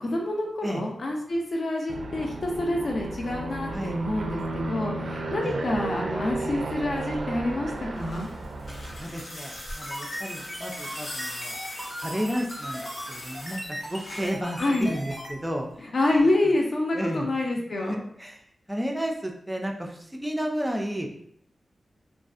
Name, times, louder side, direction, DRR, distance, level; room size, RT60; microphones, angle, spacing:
voice 1, 0.0-8.3 14.6-14.9 15.9-18.0, left 1 dB, 50° left, 0 dB, 0.5 m, -27 dB
voice 2, 0.6-0.9 3.7-4.0 5.4-5.8 9.0-11.5 12.0-12.8 13.1-15.7 16.9-17.3 17.7-18.4 18.7-21.1, equal, 10° right, 1 dB, 0.3 m, -32 dB
Aircraft, 1.9-9.2, right 2 dB, 80° right, 0.4 m, -33 dB
sound 1, 7.6-14.4 15.7-15.8, left 1 dB, 85° left, 0.8 m, -41 dB
sound 2, 9.6-15.3, equal, 15° left, 0.7 m, -37 dB
2.5 x 2.3 x 2.4 m, 0.68 s
wide cardioid pair, 145°, 0 cm